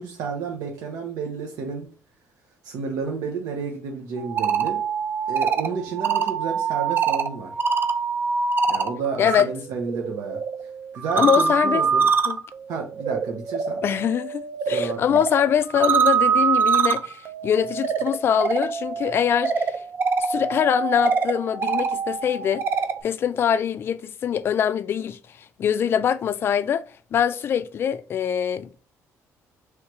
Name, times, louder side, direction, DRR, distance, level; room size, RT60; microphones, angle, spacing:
voice 1, 0.0-1.9 2.6-4.8 5.3-7.5 8.7-10.4 10.9-12.1 12.7-13.8 14.7-15.2, right 5 dB, 85° right, 0.8 m, -31 dB
sound 1, 4.2-9.4 9.7-23.0, right 5 dB, 35° right, 0.4 m, -25 dB
voice 2, 11.2-11.8 12.3-12.4 13.8-19.7 20.2-22.6 23.0-25.2 25.6-26.8 27.1-28.8, left 8 dB, 40° left, 0.3 m, -23 dB
3.2 x 3.0 x 4.6 m
cardioid pair, 160°, 6 cm